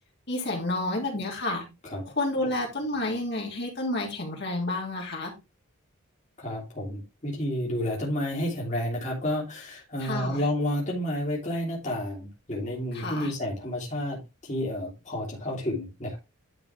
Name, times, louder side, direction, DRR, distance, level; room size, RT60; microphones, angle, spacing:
voice 1, 0.3-1.6 2.2-5.3 10.0-10.5 12.9-13.3, left 2 dB, 50° left, 2.9 m, -30 dB
voice 2, 6.4-16.2, left 1 dB, 35° left, 2.7 m, -30 dB
10.5 x 5.1 x 3.4 m
head